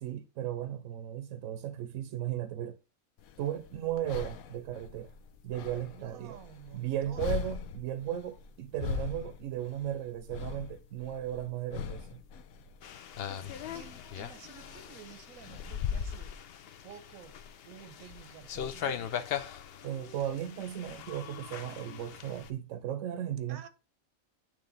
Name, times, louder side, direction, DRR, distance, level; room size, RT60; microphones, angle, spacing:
voice 1, 0.0-2.8 3.4-5.1 5.4-6.4 6.7-12.2 19.8-23.6, right 11 dB, 70° right, 0.9 m, -36 dB
sound 1, 3.2-16.2, left 7 dB, 90° left, 1.1 m, -42 dB
voice 2, 5.9-7.3 13.4-16.3 16.8-17.4 17.6-19.0 23.5-23.7, right 8 dB, 85° right, 1.2 m, -51 dB
sound 2, 12.8-22.5, left 8 dB, 60° left, 0.6 m, -39 dB
9.0 x 3.1 x 3.9 m
omnidirectional pair, 1.4 m